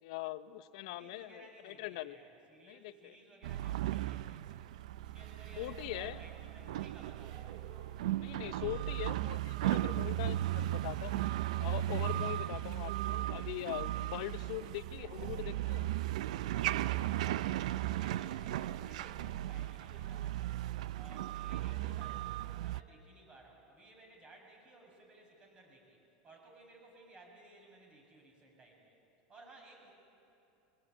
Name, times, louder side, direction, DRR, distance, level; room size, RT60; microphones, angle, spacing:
voice 1, 0.0-2.2 2.6-3.1 5.6-6.2 8.1-11.2 11.6-15.9, left 16 dB, 70° left, 13 dB, 0.9 m, -42 dB
voice 2, 0.9-4.7 5.0-7.6 16.5-20.7 20.9-26.0 26.2-29.0 29.3-29.9, right 2 dB, 25° right, 1 dB, 7.0 m, -58 dB
sound 1, 3.4-22.8, right 14 dB, 80° right, 0.5 m, -36 dB
sound 2, 6.8-21.0, right 6 dB, 55° right, 3.3 m, -59 dB
21.5 x 20.0 x 9.1 m, 2.8 s
supercardioid pair, 110°, 4 cm